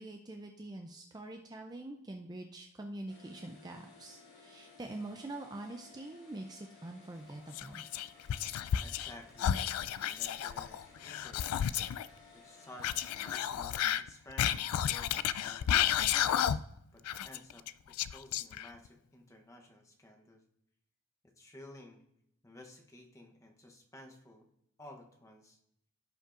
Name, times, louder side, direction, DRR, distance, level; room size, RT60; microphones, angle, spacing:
voice 1, 0.0-7.8, right 2 dB, 20° right, 4 dB, 0.4 m, -45 dB
sound 1, 3.1-13.5, left 4 dB, 50° left, 2.9 m, -58 dB
Whispering, 7.5-9.1 9.4-12.1 12.8-16.8 17.1-18.9, left 10 dB, 85° left, 0.3 m, -32 dB
voice 2, 8.8-9.6 10.0-11.7 12.3-16.6 16.9-20.4 21.2-22.0 22.4-24.5 24.8-25.6, left 1 dB, 15° left, 3 dB, 0.8 m, -54 dB
16.0 x 5.4 x 2.5 m, 0.75 s
head